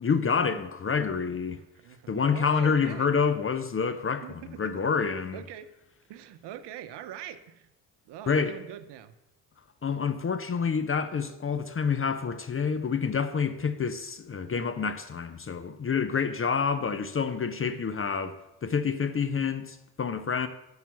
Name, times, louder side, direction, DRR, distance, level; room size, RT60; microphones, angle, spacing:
voice 1, 0.0-1.6 2.1-5.4 8.3-8.6 9.8-20.5, left 6 dB, 30° left, 0.7 m, -28 dB
voice 2, 1.7-3.1 4.2-4.7 5.3-5.7 6.1-7.7 8.1-9.1 17.7-17.8, right 10 dB, 75° right, 0.8 m, -42 dB
7.4 x 5.7 x 5.8 m
supercardioid pair, 55°, 41 cm